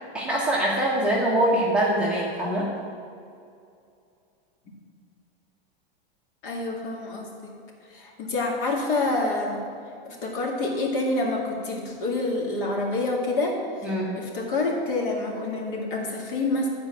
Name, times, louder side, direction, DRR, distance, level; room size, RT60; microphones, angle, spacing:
voice 1, 0.1-2.7 13.8-14.2, right 1 dB, 5° right, -7 dB, 0.9 m, -23 dB
voice 2, 6.4-7.5 7.9-9.6 10.0-16.7, left 2 dB, 60° left, -1 dB, 2.2 m, -27 dB
10.5 x 4.6 x 7.5 m, 2.4 s
supercardioid pair, 170°, 31 cm